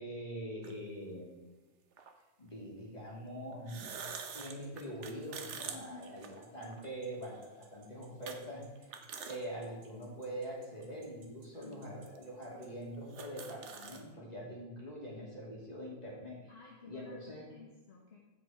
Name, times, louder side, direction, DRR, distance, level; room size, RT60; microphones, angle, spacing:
voice 1, 0.0-1.4 2.4-3.9 4.3-8.9 9.2-16.5 16.9-17.5, equal, 20° left, -4 dB, 2.8 m, -44 dB
sound 1, 0.6-0.7 2.0-2.1 3.5-6.9 7.3-7.4 8.3-8.4 8.8-9.4 9.8-9.9 10.8-10.9 11.7-11.8 12.1-12.2 12.6-12.7 12.9-14.0, right 6 dB, 55° right, 0.8 m, -45 dB
sound 2, 4.6-12.8, right 6 dB, 70° right, 2.1 m, -63 dB
voice 2, 5.7-6.2 11.5-12.1 16.5-18.2, left 5 dB, 40° left, -2 dB, 1.1 m, -53 dB
15.5 x 5.2 x 4.6 m, 1.2 s
omnidirectional pair, 2.2 m